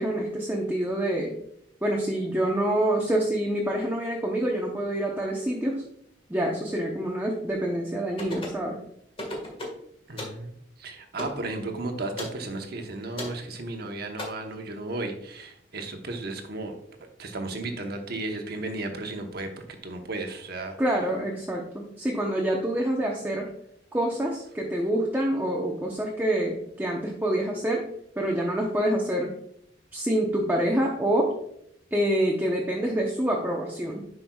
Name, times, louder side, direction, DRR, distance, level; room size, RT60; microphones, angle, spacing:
voice 1, 0.0-1.3 1.8-5.8 6.3-8.8 20.8-23.5 23.9-27.9 28.2-29.3 29.9-31.3 31.9-34.0, right 1 dB, 10° right, -2 dB, 0.8 m, -26 dB
sound 1, 8.2-8.6 9.2-9.8 10.2-10.4 11.2-11.4 12.2-12.4 13.2-13.4 14.2-14.3, left 1 dB, 30° left, 1.6 m, -34 dB
voice 2, 10.1-10.5 10.8-16.8 17.2-20.8, right 2 dB, 60° right, 4 dB, 1.1 m, -34 dB
10.0 x 5.3 x 2.3 m, 0.72 s
head